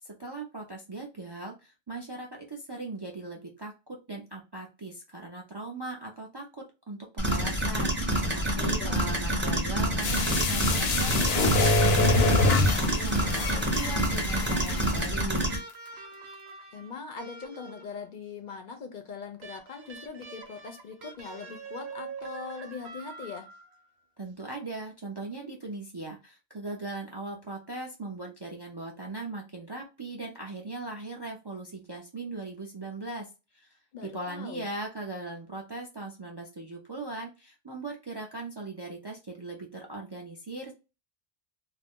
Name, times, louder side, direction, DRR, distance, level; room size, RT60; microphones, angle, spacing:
voice 1, 0.0-15.6 24.2-33.3 33.5-40.7, right 2 dB, 35° right, 0.4 m, -39 dB
sound 1, 7.2-15.6, equal, 10° right, 0.7 m, -28 dB
voice 2, 8.3-9.0 16.7-23.5 33.9-34.7, left 5 dB, 60° left, 0.6 m, -41 dB
sound 2, 10.0-15.0 15.4-15.5, left 2 dB, 80° left, 0.8 m, -25 dB
sound 3, 13.1-14.1 15.5-18.1 19.4-23.9 25.2-25.3, right 4 dB, 85° right, 0.9 m, -45 dB
2.4 x 2.1 x 3.5 m
omnidirectional pair, 1.0 m